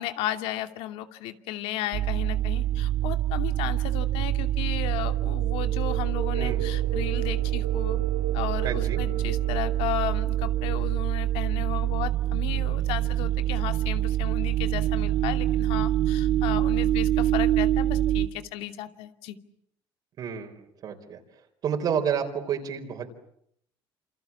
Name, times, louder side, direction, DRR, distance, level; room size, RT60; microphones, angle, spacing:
voice 1, 0.0-8.0 8.3-19.4, left 14 dB, 85° left, 8 dB, 2.6 m, -34 dB
sound 1, 1.9-18.3, right 13 dB, 65° right, 1.6 m, -25 dB
voice 2, 8.6-9.0 20.2-21.2 21.6-23.1, right 8 dB, 40° right, 3 dB, 4.2 m, -30 dB
29.5 x 28.0 x 7.3 m, 0.71 s
cardioid pair, 170°, 10 cm